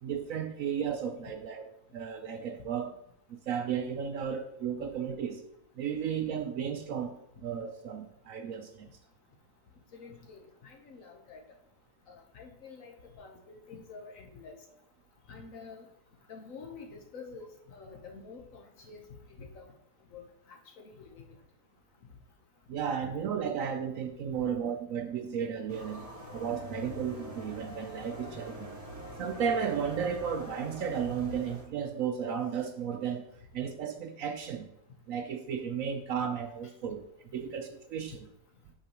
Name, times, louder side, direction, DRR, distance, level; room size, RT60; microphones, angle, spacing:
voice 1, 0.0-2.9 3.3-5.4 5.8-8.9 22.7-28.8 29.2-33.3 33.5-34.7 35.1-37.0 37.3-38.2, right 7 dB, 65° right, 5 dB, 0.9 m, -34 dB
voice 2, 9.9-11.4 12.1-14.6 15.3-15.9 16.3-19.0 19.4-19.7 20.1-21.4 22.8-23.1 24.3-24.5 37.4-37.5, left 4 dB, 60° left, 3 dB, 1.2 m, -48 dB
sound 1, 25.7-31.6, equal, 30° left, 2.5 m, -44 dB
8.3 x 5.5 x 2.9 m, 0.75 s
omnidirectional pair, 1.7 m